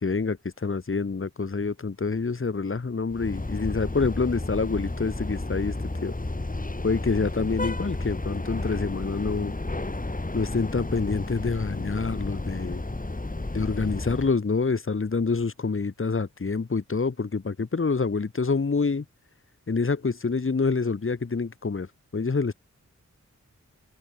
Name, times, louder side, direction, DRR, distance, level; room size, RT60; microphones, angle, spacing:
voice 1, 0.0-5.7 6.0-6.1 6.8-9.5 10.3-12.8 13.5-19.0 19.7-21.9 22.1-22.5, left 4 dB, 45° left, 1.8 m, -27 dB
sound 1, 3.1-14.3, left 2 dB, 30° left, 8.0 m, -32 dB
open air
wide cardioid pair, 90°, 29 cm